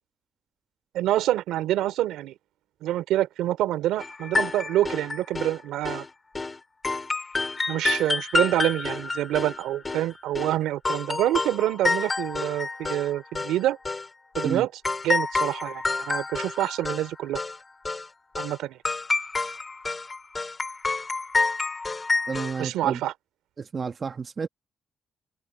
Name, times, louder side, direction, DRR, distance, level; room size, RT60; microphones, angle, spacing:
voice 1, 0.9-2.3 2.8-6.0 7.7-13.8 14.4-14.7 15.0-17.4 18.4-18.8 22.6-23.1, right 13 dB, 90° right, 2.7 m, -26 dB
sound 1, 4.0-5.6 5.8-6.1 6.3-6.6 6.8-10.5 10.8-13.1 13.3-14.1 14.3-14.6 14.8-17.1 17.3-17.6 17.8-18.1 18.3-18.6 18.8-22.7, left 3 dB, 25° left, 3.9 m, -28 dB
voice 2, 22.3-23.0 23.6-24.5, right 5 dB, 40° right, 1.4 m, -31 dB
open air
cardioid pair, 90°, 0 cm